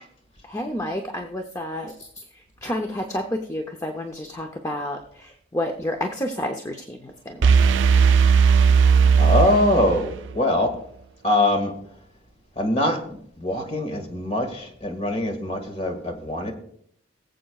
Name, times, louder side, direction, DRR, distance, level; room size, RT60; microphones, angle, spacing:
voice 1, 0.4-2.2 2.6-7.8, left 1 dB, 15° left, 4 dB, 0.6 m, -30 dB
sound 1, 7.4-10.3, right 6 dB, 70° right, 0.4 m, -17 dB
voice 2, 9.2-10.7 11.2-11.7 12.6-13.0 13.4-16.5, left 1 dB, 30° left, 4 dB, 1.8 m, -23 dB
22.0 x 7.6 x 2.3 m, 0.66 s
head